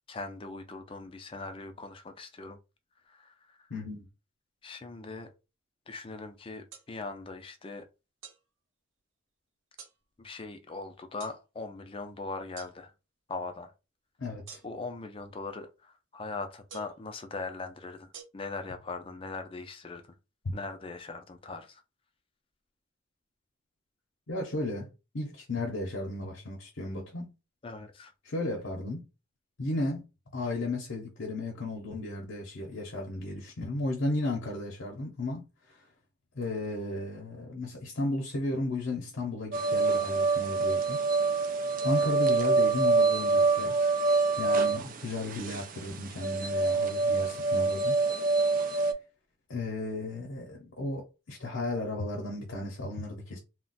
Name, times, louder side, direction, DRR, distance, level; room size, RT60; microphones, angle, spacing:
voice 1, 0.1-2.6 3.1-3.7 4.6-5.3 5.9-7.9 10.2-12.9 13.3-13.7 14.6-20.0 20.5-21.8 27.6-28.1, left 3 dB, 25° left, 0.4 m, -40 dB
voice 2, 3.7-4.1 14.2-14.6 20.4-20.5 24.3-24.9 25.1-27.3 28.2-29.1 29.6-35.8 36.3-41.0 41.8-43.8 44.4-48.0 49.5-53.4, left 2 dB, 75° left, 0.7 m, -34 dB
sound 1, 6.7-6.9 8.2-8.4 9.8-10.0 11.2-11.4 12.6-12.7 14.5-14.9 16.7-17.0 18.1-18.2, right 6 dB, 70° right, 0.8 m, -47 dB
sound 2, 39.5-48.9, right 3 dB, 45° right, 0.4 m, -26 dB
2.4 x 2.1 x 3.8 m
head